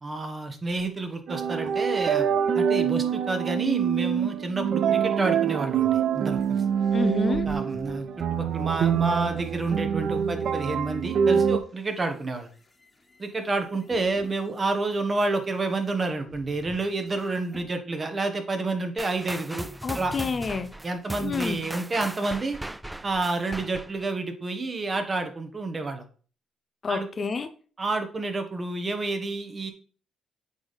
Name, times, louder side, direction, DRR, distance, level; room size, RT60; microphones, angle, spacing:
voice 1, 0.0-2.3 2.5-6.6 7.4-8.1 8.3-12.5 13.2-19.7 19.9-20.1 20.8-22.6 23.0-26.0 26.9-27.1 27.8-29.7, right 3 dB, 30° right, 1.3 m, -29 dB
sound 1, 1.3-11.6, right 8 dB, 65° right, 0.6 m, -25 dB
sound 2, 5.7-10.5 11.1-17.7, left 2 dB, 20° left, 1.5 m, -50 dB
voice 2, 6.9-7.5 19.8-20.7 21.2-21.7 26.8-27.5, left 4 dB, 40° left, 0.6 m, -29 dB
sound 3, 19.0-24.1, right 1 dB, 10° right, 0.3 m, -38 dB
8.0 x 3.5 x 4.1 m
cardioid pair, 90°, 0 cm